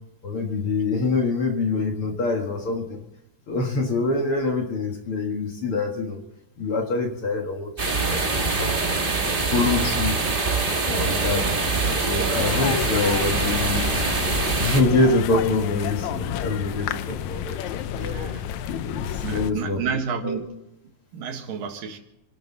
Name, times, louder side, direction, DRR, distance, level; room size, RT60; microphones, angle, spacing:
voice 1, 0.2-3.0 3.5-6.2 6.6-9.0 9.5-10.2 10.9-13.9 14.6-17.9 18.7-19.8 20.2-20.4, left 3 dB, 45° left, 2 dB, 2.1 m, -25 dB
sound 1, 7.8-14.8, right 3 dB, 40° right, 0.7 m, -24 dB
sound 2, 12.5-19.5, left 10 dB, 75° left, 1.7 m, -30 dB
voice 2, 17.9-18.5 19.2-20.6 21.1-22.0, right 6 dB, 75° right, 4 dB, 3.2 m, -31 dB
27.0 x 12.0 x 4.0 m, 0.90 s
omnidirectional pair, 4.0 m